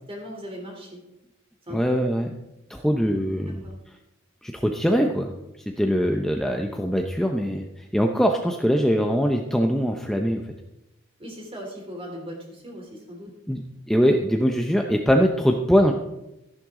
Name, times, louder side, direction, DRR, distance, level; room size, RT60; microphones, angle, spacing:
voice 1, 0.1-1.0 1.7-1.9 3.6-3.8 11.2-13.3, equal, 30° right, 1 dB, 3.3 m, -38 dB
voice 2, 1.7-2.3 2.7-3.6 4.4-5.3 5.8-7.7 7.9-10.4 13.5-15.9, equal, ahead, 2 dB, 0.7 m, -22 dB
13.5 x 11.0 x 3.7 m, 0.94 s
head